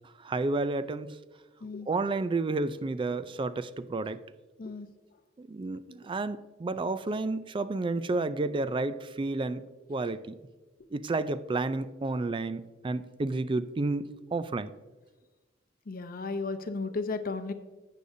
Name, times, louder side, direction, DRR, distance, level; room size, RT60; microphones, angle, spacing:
voice 1, 0.2-1.2 1.9-4.2 5.4-9.6 9.9-10.3 10.9-14.7, right 3 dB, 25° right, 13 dB, 0.4 m, -31 dB
voice 2, 15.9-17.5, left 3 dB, 45° left, 10 dB, 0.7 m, -34 dB
11.5 x 8.4 x 2.7 m, 1.2 s
head